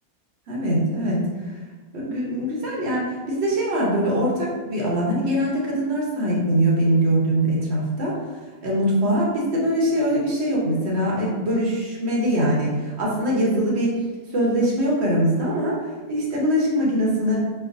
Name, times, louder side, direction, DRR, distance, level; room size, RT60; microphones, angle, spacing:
voice 1, 0.5-1.5 1.9-8.2 8.6-14.0 14.3-17.5, equal, 55° right, -4 dB, 0.9 m, -22 dB
4.4 x 2.0 x 2.5 m, 1.3 s
omnidirectional pair, 1.5 m